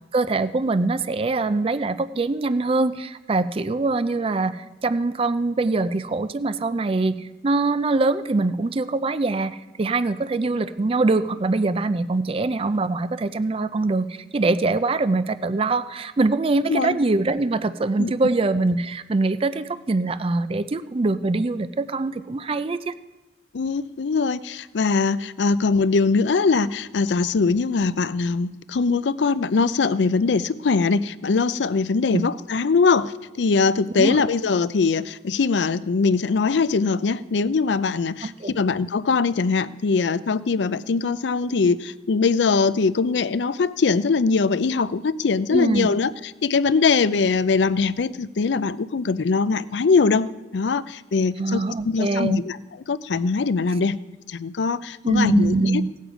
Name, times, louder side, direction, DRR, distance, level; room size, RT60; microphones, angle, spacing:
voice 1, 0.1-22.9 32.1-32.3 34.0-34.2 38.2-38.5 45.5-45.9 51.4-52.4 55.0-55.9, right 3 dB, 30° right, 13 dB, 0.4 m, -23 dB
voice 2, 23.5-46.1 46.4-52.6 52.9-54.0 54.3-55.8, left 4 dB, 75° left, 16 dB, 0.5 m, -22 dB
17.5 x 8.4 x 5.0 m, 1.1 s
head